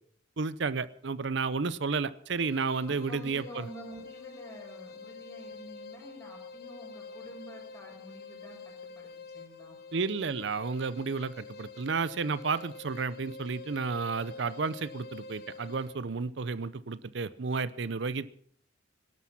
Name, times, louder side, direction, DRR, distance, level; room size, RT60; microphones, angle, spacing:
voice 1, 0.4-3.7 9.9-18.3, right 4 dB, 60° right, 17 dB, 0.6 m, -32 dB
sound 1, 2.3-16.0, left 4 dB, 50° left, 1.2 m, -47 dB
voice 2, 2.9-9.8, equal, 15° left, 0 dB, 5.3 m, -49 dB
18.5 x 12.0 x 5.8 m, 0.63 s
head